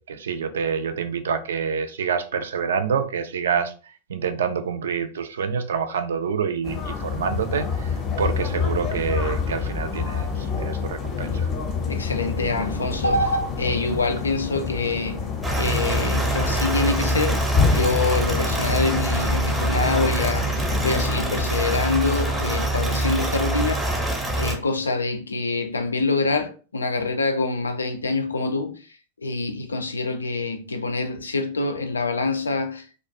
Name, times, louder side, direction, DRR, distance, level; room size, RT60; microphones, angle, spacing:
voice 1, 0.1-3.7 4.1-7.9 8.2-10.3 10.6-11.5, right 6 dB, 65° right, 0.3 m, -27 dB
sound 1, 6.6-21.5, left 5 dB, 30° left, 0.6 m, -28 dB
voice 2, 11.9-15.3 15.6-28.8 29.2-32.9, left 3 dB, 75° left, 0.3 m, -25 dB
sound 2, 15.4-24.6, right 1 dB, 5° right, 0.6 m, -24 dB
2.3 x 2.1 x 2.6 m
figure-of-eight pair, 90°, 0 cm